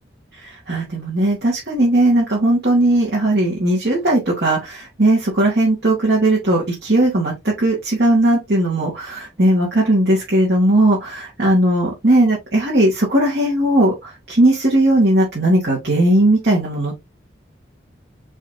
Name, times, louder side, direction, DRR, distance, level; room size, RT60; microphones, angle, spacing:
voice 1, 0.7-17.0, right 1 dB, 60° right, 2.0 m, -17 dB
4.8 x 4.2 x 2.6 m
head